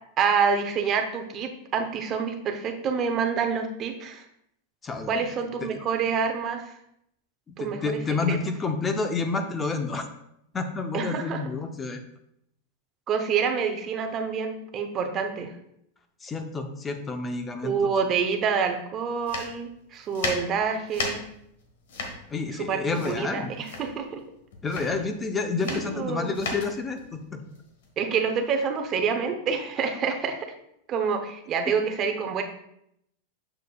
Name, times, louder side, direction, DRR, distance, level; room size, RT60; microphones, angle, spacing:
voice 1, 0.2-4.2 5.1-6.6 7.6-8.0 8.3-8.4 10.9-11.4 13.1-15.5 17.6-21.2 22.6-22.8 23.0-24.2 25.7-26.3 28.0-30.5 30.9-32.4, right 6 dB, 30° right, 5 dB, 0.7 m, -27 dB
voice 2, 4.8-5.3 5.6-5.8 7.5-10.0 10.5-12.0 16.2-17.9 22.3-23.5 24.6-27.4, left 4 dB, 15° left, 6 dB, 0.6 m, -29 dB
sound 1, 19.2-28.5, left 3 dB, 80° left, 1.3 m, -35 dB
6.6 x 6.5 x 2.3 m, 0.76 s
supercardioid pair, 145°, 0 cm